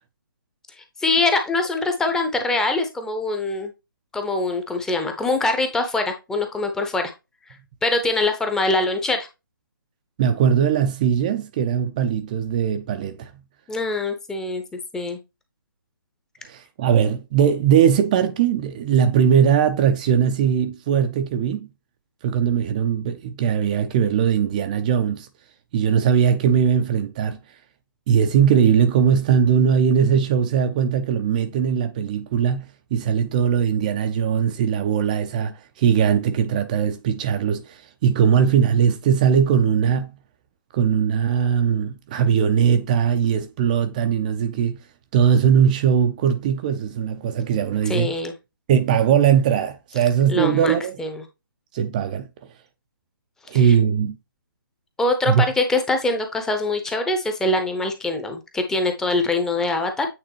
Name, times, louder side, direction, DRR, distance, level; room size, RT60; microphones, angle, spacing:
voice 1, 1.0-3.7 4.1-7.1 7.8-9.3 13.7-15.2 47.9-48.3 50.3-51.2 53.6-53.7 55.0-60.1, left 2 dB, 5° left, 0.7 m, -23 dB
voice 2, 10.2-13.3 16.5-21.7 22.2-25.3 25.7-27.4 28.1-40.1 40.7-44.8 45.1-48.1 48.7-51.0 51.7-52.3 53.5-54.2 55.3-55.4, right 8 dB, 20° right, 0.5 m, -20 dB
8.7 x 3.7 x 2.9 m
figure-of-eight pair, 150°, 12 cm